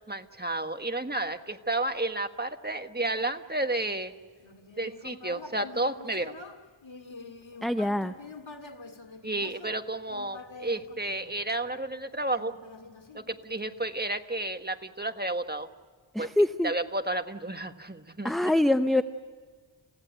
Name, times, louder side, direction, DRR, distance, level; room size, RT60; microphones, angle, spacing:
voice 1, 0.1-4.1 4.8-6.3 9.2-12.5 13.1-15.7 16.2-16.3 16.6-18.5, right 2 dB, 20° right, 7 dB, 1.5 m, -31 dB
Human voice, 4.4-11.8 12.3-13.8, left 3 dB, 80° left, 1.9 m, -46 dB
voice 2, 7.6-8.1 16.1-16.7 18.2-19.0, left 1 dB, ahead, 10 dB, 0.7 m, -24 dB
30.0 x 16.5 x 9.1 m, 1.5 s
wide cardioid pair, 40°, 46 cm